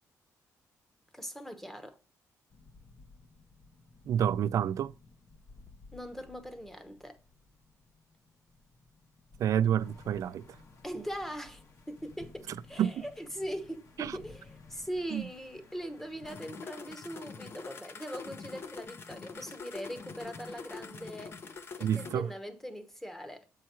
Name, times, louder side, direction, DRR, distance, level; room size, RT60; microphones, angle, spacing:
voice 1, 1.1-2.0 5.9-7.2 10.8-21.4 21.8-23.5, equal, 5° left, 0.9 m, -41 dB
sound 1, 2.5-22.1, left 4 dB, 40° left, 0.7 m, -49 dB
voice 2, 4.0-4.9 9.4-10.5 12.8-13.0 14.0-14.2 15.1-15.3 21.8-22.3, right 9 dB, 65° right, 0.4 m, -28 dB
sound 2, 9.8-17.0, left 4 dB, 60° left, 1.5 m, -63 dB
7.5 x 4.7 x 4.4 m
cardioid pair, 130°, 6 cm